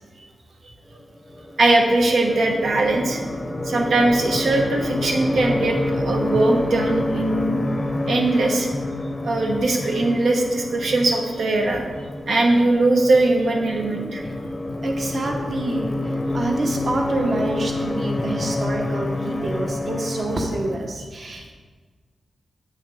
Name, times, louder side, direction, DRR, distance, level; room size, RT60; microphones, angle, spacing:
sound 1, 1.3-20.8, left 2 dB, 15° left, 0.7 m, -28 dB
voice 1, 1.6-3.2 3.6-7.6 8.1-8.7 9.2-11.8 12.3-14.2 16.3-16.4, right 2 dB, 75° right, 1 dB, 1.0 m, -20 dB
voice 2, 14.8-15.9 16.3-21.5, right 2 dB, 45° right, 1 dB, 1.2 m, -27 dB
9.3 x 8.6 x 3.5 m, 1.4 s
wide cardioid pair, 160°, 0 cm